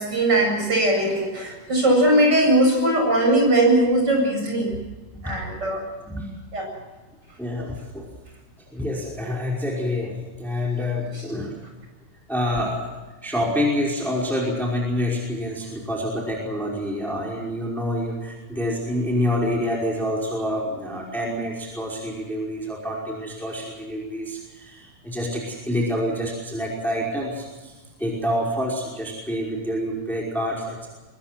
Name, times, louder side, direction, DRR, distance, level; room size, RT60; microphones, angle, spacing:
voice 1, 0.0-4.7 5.2-5.8 6.5-6.7, right 1 dB, 30° right, 1 dB, 8.4 m, -20 dB
voice 2, 7.4-8.1 8.7-11.6 12.3-12.9 13.2-27.7 28.0-30.9, left 1 dB, ahead, -2 dB, 5.1 m, -27 dB
24.0 x 23.0 x 6.1 m, 1.2 s
omnidirectional pair, 3.5 m